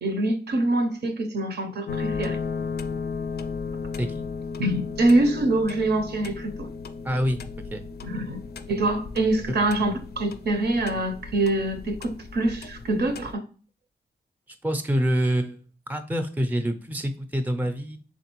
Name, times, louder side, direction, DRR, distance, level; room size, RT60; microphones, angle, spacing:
voice 1, 0.0-2.4 4.6-6.7 8.0-8.4 8.7-13.4, right 2 dB, 65° right, 0.6 m, -24 dB
sound 1, 1.9-13.3, left 5 dB, 65° left, 0.4 m, -35 dB
voice 2, 7.0-7.4 7.7-7.8 14.6-15.6 15.9-18.0, equal, 10° right, 0.5 m, -26 dB
3.6 x 3.2 x 3.0 m
cardioid pair, 70°, 18 cm